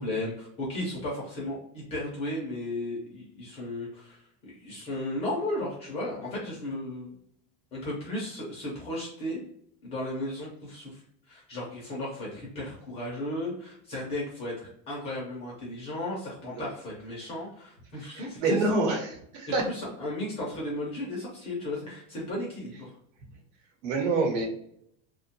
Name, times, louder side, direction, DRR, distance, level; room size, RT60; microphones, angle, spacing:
voice 1, 0.0-7.1 7.7-9.4 9.8-11.0 11.3-18.6 19.6-23.0, left 1 dB, 15° left, -4 dB, 0.3 m, -35 dB
voice 2, 16.4-16.7 18.0-19.6 23.8-24.5, right 3 dB, 85° right, 2 dB, 1.0 m, -27 dB
2.7 x 2.2 x 2.7 m, 0.69 s
cardioid pair, 180°, 39 cm